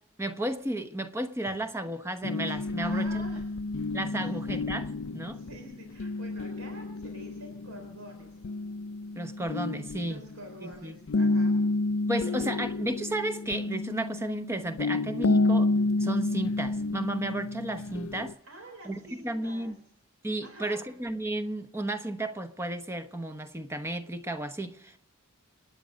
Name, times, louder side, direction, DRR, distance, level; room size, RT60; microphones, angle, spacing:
voice 1, 0.2-3.2 3.9-5.4 9.1-10.2 10.6-11.0 12.1-15.7 16.0-18.4 18.9-19.7 20.2-25.0, right 1 dB, 10° right, 1.0 m, -33 dB
sound 1, 2.2-10.7 11.1-18.3, left 2 dB, 65° left, 0.5 m, -30 dB
voice 2, 2.8-3.7 4.2-4.4 5.3-8.4 10.1-11.5 12.2-12.5 18.4-19.7 20.4-20.8, right 1 dB, 75° right, 3.8 m, -48 dB
29.0 x 9.7 x 5.2 m
head